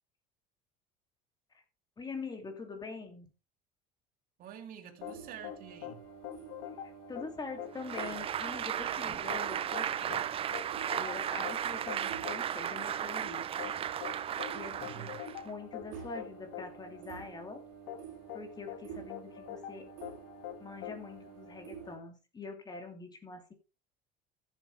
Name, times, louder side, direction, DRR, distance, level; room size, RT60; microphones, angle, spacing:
voice 1, 2.0-3.3 6.8-10.3 11.0-13.7 14.5-15.1 15.4-17.6 18.3-19.9 20.6-23.5, left 4 dB, 25° left, 2.5 m, -44 dB
voice 2, 4.4-6.0 14.8-15.3, right 9 dB, 55° right, 2.4 m, -48 dB
sound 1, 5.0-21.9, left 12 dB, 85° left, 1.9 m, -46 dB
sound 2, 5.0-22.0, right 8 dB, 85° right, 3.1 m, -50 dB
Applause, 7.7-15.5, right 9 dB, 35° right, 0.5 m, -35 dB
15.0 x 7.5 x 3.3 m
cardioid pair, 115°, 17 cm